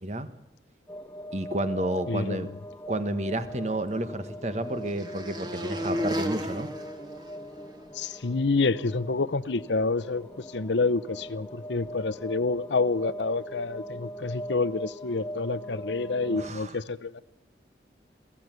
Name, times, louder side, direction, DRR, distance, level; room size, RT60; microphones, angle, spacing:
sound 1, 0.9-16.5, equal, 10° left, 1.6 m, -41 dB
voice 1, 1.3-2.5 2.9-6.7 16.2-16.8, right 1 dB, 40° right, 1.5 m, -31 dB
voice 2, 2.1-2.5 7.9-17.2, left 3 dB, 85° left, 0.8 m, -28 dB
sound 2, 3.5-7.9, equal, 25° right, 2.3 m, -35 dB
23.5 x 16.0 x 9.3 m
head